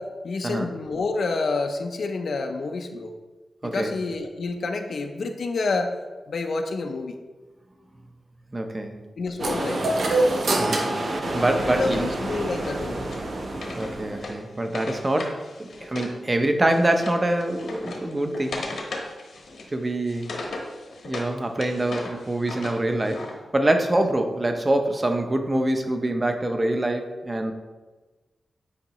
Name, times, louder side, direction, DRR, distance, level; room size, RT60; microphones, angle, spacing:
voice 1, 0.0-3.1 3.6-6.0 6.3-7.2 9.2-9.9 11.6-13.0 20.5-20.7 22.9-23.0, left 3 dB, 65° left, 4 dB, 0.5 m, -29 dB
voice 2, 3.6-4.0 8.5-9.1 10.6-11.1 11.3-12.1 13.8-18.6 19.7-20.3 21.0-27.5, right 1 dB, 25° right, 6 dB, 0.6 m, -25 dB
sound 1, 9.4-14.3, right 1 dB, 55° right, 0.8 m, -30 dB
sound 2, 9.4-12.1, right 2 dB, 75° right, 1.0 m, -26 dB
Wood, 10.4-16.2 16.4-21.3 21.6-23.3, left 2 dB, 80° left, 1.1 m, -38 dB
8.4 x 4.6 x 3.0 m, 1.3 s
wide cardioid pair, 125°, 0 cm